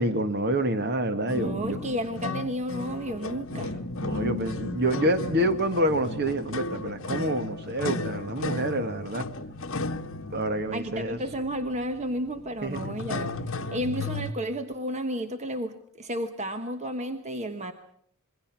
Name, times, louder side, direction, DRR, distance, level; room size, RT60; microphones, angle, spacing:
voice 1, 0.0-1.8 3.5-3.7 4.0-9.3 10.3-11.2 12.6-13.0, right 1 dB, 50° right, 10 dB, 1.7 m, -27 dB
sound 1, 1.3-14.3, left 2 dB, 60° left, 1.2 m, -34 dB
voice 2, 1.3-3.8 10.7-13.3 13.7-17.7, equal, 30° right, 8 dB, 1.3 m, -32 dB
27.0 x 22.5 x 6.1 m, 0.65 s
head